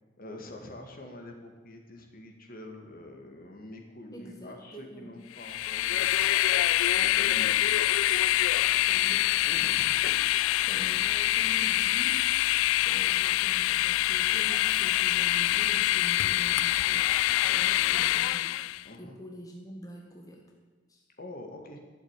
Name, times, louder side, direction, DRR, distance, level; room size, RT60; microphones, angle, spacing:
voice 1, 0.2-6.2 6.6-7.8 8.4-8.7 9.4-11.0 18.8-19.1 21.2-21.8, left 1 dB, 45° left, 3 dB, 2.1 m, -46 dB
voice 2, 4.1-5.2 7.0-7.4 8.7-9.5 10.6-12.3 12.7-17.1 17.4-18.6 19.0-20.5 20.9-21.0, right 1 dB, 20° left, 0 dB, 1.6 m, -46 dB
Train, 5.4-18.8, left 15 dB, 90° left, 0.3 m, -25 dB
12.5 x 7.8 x 9.8 m, 1.3 s
head